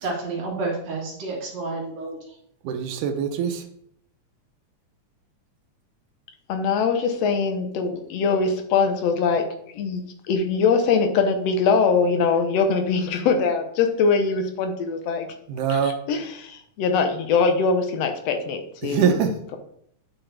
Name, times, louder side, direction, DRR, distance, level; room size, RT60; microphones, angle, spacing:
voice 1, 0.0-2.2, right 3 dB, 60° right, -2 dB, 3.0 m, -30 dB
voice 2, 2.6-3.7 15.5-15.9 18.8-19.4, right 7 dB, 90° right, 5 dB, 2.3 m, -23 dB
voice 3, 6.5-9.5 9.7-15.3 15.7-15.8 16.1-19.1, left 5 dB, 70° left, 6 dB, 1.7 m, -22 dB
8.7 x 5.9 x 3.4 m, 0.69 s
omnidirectional pair, 3.5 m